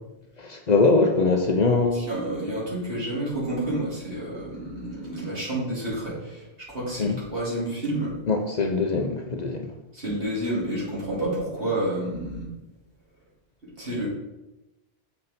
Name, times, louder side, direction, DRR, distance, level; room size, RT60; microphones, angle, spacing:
voice 1, 0.4-2.1 7.0-7.2 8.3-9.7, left 3 dB, 50° left, 3 dB, 0.7 m, -22 dB
voice 2, 1.9-8.1 9.9-12.5 13.6-14.1, right 1 dB, 65° right, -7 dB, 2.8 m, -30 dB
6.7 x 5.4 x 4.2 m, 1.0 s
omnidirectional pair, 1.0 m